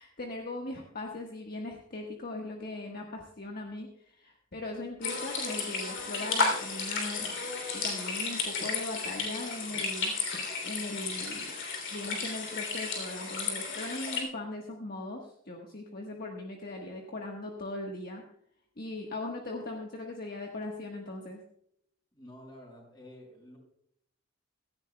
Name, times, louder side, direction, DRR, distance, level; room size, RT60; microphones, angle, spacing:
voice 1, 0.0-7.3 7.7-10.1 10.6-11.5 11.9-18.2 18.8-21.4, left 2 dB, 50° left, 1 dB, 1.4 m, -39 dB
sound 1, 5.0-14.2, left 4 dB, 65° left, 3.2 m, -33 dB
voice 2, 22.1-23.6, left 1 dB, 20° left, -1 dB, 5.9 m, -50 dB
17.0 x 14.5 x 2.3 m, 0.68 s
head